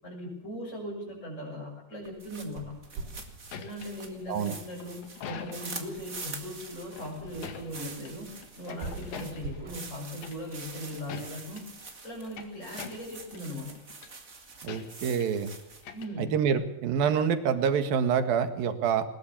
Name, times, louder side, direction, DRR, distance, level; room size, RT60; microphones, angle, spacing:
voice 1, 0.0-2.7 3.6-8.3 8.6-11.6 12.0-13.8 15.9-16.3, left 1 dB, 20° left, -4 dB, 6.5 m, -39 dB
sound 1, 2.1-16.0, right 4 dB, 25° right, 2.4 m, -45 dB
sound 2, 2.2-11.6, right 4 dB, 90° right, 5.7 m, -47 dB
sound 3, 2.9-5.9 6.8-8.1 8.4-9.6 10.2-10.6 10.9-11.6 12.1-13.5 13.7-14.1 14.7-15.4 15.7-16.5, left 7 dB, 70° left, 3.6 m, -44 dB
voice 2, 14.6-15.5 16.2-19.1, right 7 dB, 70° right, 10 dB, 3.5 m, -26 dB
21.5 x 21.0 x 7.2 m, 0.83 s
omnidirectional pair, 4.4 m